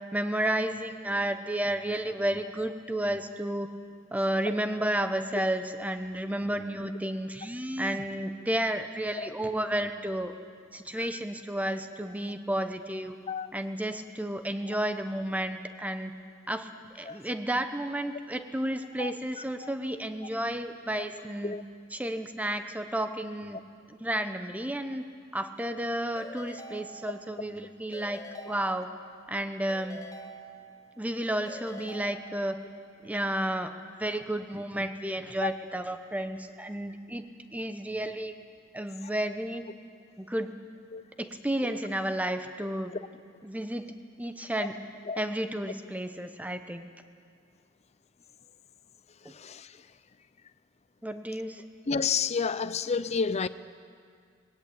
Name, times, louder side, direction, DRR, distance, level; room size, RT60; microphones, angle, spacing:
voice 1, 0.1-3.7 4.1-10.3 10.7-13.2 13.5-16.1 16.5-16.7 16.9-21.6 21.9-23.6 23.9-25.0 25.3-28.9 29.3-30.0 31.0-32.6 33.0-37.3 37.5-38.3 38.7-39.6 40.2-40.5 41.2-42.9 43.4-43.9 44.2-44.8 45.2-46.9 49.2-49.3 51.0-51.6, right 1 dB, 10° right, 0.9 m, -32 dB
Keyboard (musical) / Ringtone, 26.2-27.5 27.9-29.2 29.7-31.0 31.5-32.8, equal, 20° left, 0.9 m, -45 dB
voice 2, 49.3-49.7 51.9-53.5, left 5 dB, 35° left, 0.5 m, -30 dB
20.0 x 18.0 x 8.6 m
head